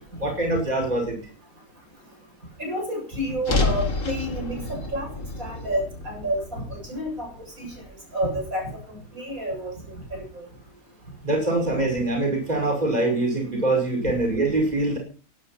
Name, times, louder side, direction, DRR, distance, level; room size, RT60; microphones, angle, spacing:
voice 1, 0.2-1.2 11.2-15.0, right 2 dB, 30° right, 2 dB, 5.7 m, -24 dB
voice 2, 2.6-5.1 5.4-7.3 7.6-7.7 8.1-9.7, equal, 85° right, 1 dB, 7.7 m, -29 dB
sound 1, 3.4-7.7, left 3 dB, 65° left, 2.4 m, -29 dB
17.0 x 9.9 x 5.8 m, 0.37 s
omnidirectional pair, 1.4 m